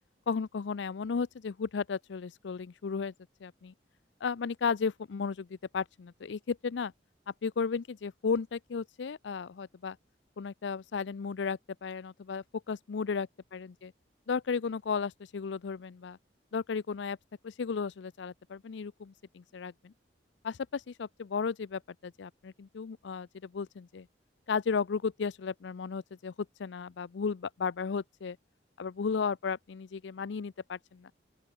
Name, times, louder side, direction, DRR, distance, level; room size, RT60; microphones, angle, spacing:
voice 1, 0.3-3.1 3.4-3.7 4.2-6.9 7.4-10.0 10.4-13.3 13.5-13.9 14.3-16.2 16.5-17.2 17.4-19.9 20.4-24.1 24.5-26.3 26.6-28.4 28.8-31.1, left 5 dB, 85° left, 0.5 m, -34 dB
open air
head